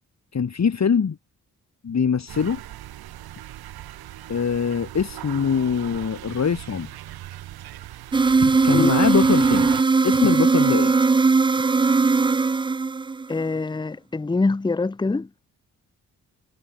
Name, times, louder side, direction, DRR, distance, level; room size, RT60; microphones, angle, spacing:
voice 1, 0.3-1.2 1.8-2.6 4.3-6.9 8.4-9.7 10.0-10.9, left 6 dB, 45° left, 1.8 m, -23 dB
sound 1, 2.3-9.8, right 14 dB, 90° right, 2.1 m, -38 dB
sound 2, 8.1-13.4, right 4 dB, 15° right, 0.4 m, -19 dB
voice 2, 13.3-15.3, left 3 dB, 15° left, 0.7 m, -24 dB
supercardioid pair, 55°, 36 cm